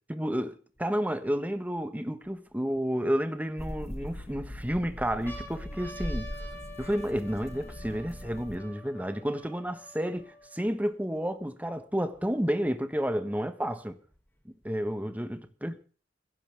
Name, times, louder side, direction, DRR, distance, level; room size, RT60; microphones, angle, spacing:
voice 1, 0.1-6.3 6.8-14.0 14.4-15.8, equal, 10° right, 1.3 m, -31 dB
sound 1, 0.8-0.9 1.5-2.8 3.5-4.3 4.7-4.8 5.1-10.7 11.4-11.5 11.7-12.7 13.6-14.7, equal, 10° left, 3.3 m, -48 dB
sound 2, 3.6-8.6, left 1 dB, 35° left, 1.7 m, -40 dB
21.5 x 16.0 x 3.5 m
head